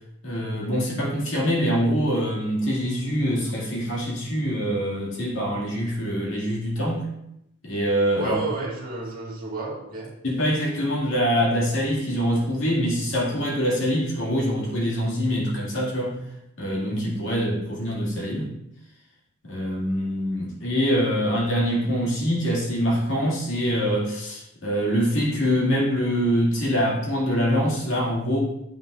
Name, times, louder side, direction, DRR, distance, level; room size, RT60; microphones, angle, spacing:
voice 1, 0.2-7.0 7.6-8.4 10.2-16.2 16.6-18.5 19.4-28.4, equal, 70° left, -4 dB, 2.2 m, -24 dB
voice 2, 8.2-10.1 17.2-17.3, right 3 dB, 45° right, -4 dB, 1.7 m, -31 dB
8.7 x 5.7 x 2.5 m, 0.80 s
head